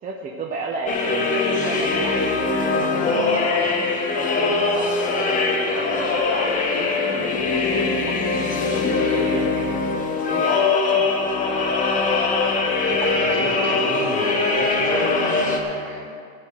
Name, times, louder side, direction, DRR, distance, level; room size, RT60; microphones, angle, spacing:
voice 1, 0.0-6.9 7.5-11.1, right 3 dB, 20° right, 0 dB, 0.7 m, -33 dB
sound 1, 0.9-15.6, left 3 dB, 20° left, 1.1 m, -22 dB
voice 2, 12.9-16.1, right 3 dB, 50° right, -4 dB, 3.6 m, -32 dB
14.0 x 4.8 x 9.2 m, 2.2 s
supercardioid pair, 155°, 42 cm